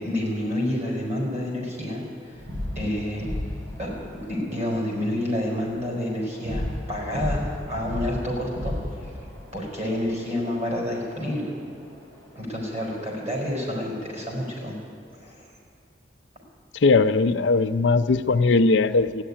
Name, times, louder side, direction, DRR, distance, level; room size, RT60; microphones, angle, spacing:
voice 1, 0.0-2.4 2.7-3.2 3.8-8.7 9.0-9.1 9.5-11.5 12.3-14.7 15.2-15.5, left 1 dB, 40° right, -2 dB, 4.8 m, -29 dB
sound 1, 2.4-12.8, left 1 dB, 85° right, 5.0 m, -35 dB
voice 2, 16.8-19.2, left 3 dB, 75° left, 11 dB, 0.6 m, -19 dB
14.5 x 9.8 x 10.0 m, 2.4 s
head